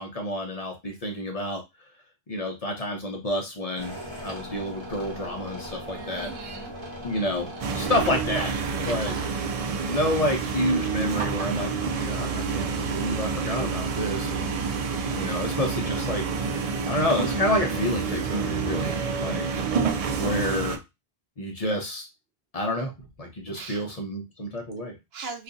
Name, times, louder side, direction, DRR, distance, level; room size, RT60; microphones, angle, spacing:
voice 1, 0.0-1.6 2.3-6.3 7.0-8.5 8.8-9.1 9.9-14.5 15.1-16.3 16.9-18.9 19.2-19.5 20.2-20.8 21.4-22.1 22.5-22.9 23.2-24.9, left 1 dB, 45° left, 0.6 m, -29 dB
sound 1, 3.8-8.8, equal, 30° right, 0.9 m, -39 dB
voice 2, 5.9-6.7 7.1-7.8 8.8-9.5 9.8-10.1 18.8-19.4 23.5-23.8 25.1-25.4, right 4 dB, 75° right, 1.0 m, -42 dB
sound 2, 7.6-20.8, right 5 dB, 55° right, 0.4 m, -28 dB
2.4 x 2.4 x 3.8 m
omnidirectional pair, 1.0 m